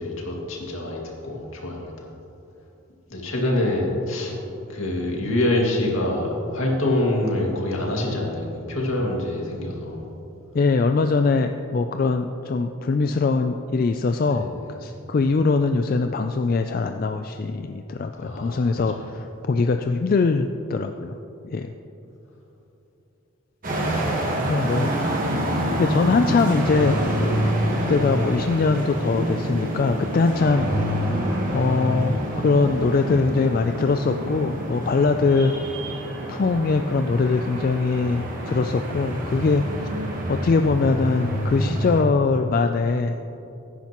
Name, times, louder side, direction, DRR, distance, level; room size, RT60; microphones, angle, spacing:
voice 1, 0.0-1.9 3.1-4.3 4.7-10.1 14.3-14.4 18.2-18.6, left 1 dB, 75° left, -2 dB, 2.2 m, -25 dB
voice 2, 10.5-14.5 14.8-21.2 21.5-21.7 24.5-24.9 25.8-26.9 27.9-30.7 31.5-35.5 36.3-39.9 40.3-43.2, left 4 dB, 40° left, 6 dB, 0.3 m, -22 dB
sound 1, 23.6-42.0, equal, 40° right, 1.4 m, -27 dB
16.5 x 10.0 x 3.0 m, 2.9 s
head